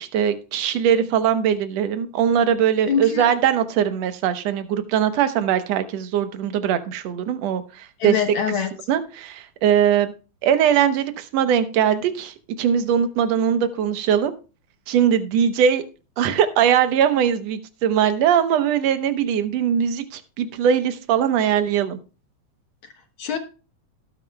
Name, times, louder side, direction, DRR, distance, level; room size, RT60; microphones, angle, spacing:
voice 1, 0.0-8.2 8.9-10.1 10.4-14.3 14.9-15.8 16.2-22.0, right 8 dB, 65° right, 10 dB, 1.9 m, -21 dB
voice 2, 2.9-3.3 8.0-8.7 23.2-23.4, left 7 dB, 65° left, 4 dB, 1.3 m, -24 dB
18.0 x 9.3 x 2.3 m, 0.34 s
omnidirectional pair, 3.7 m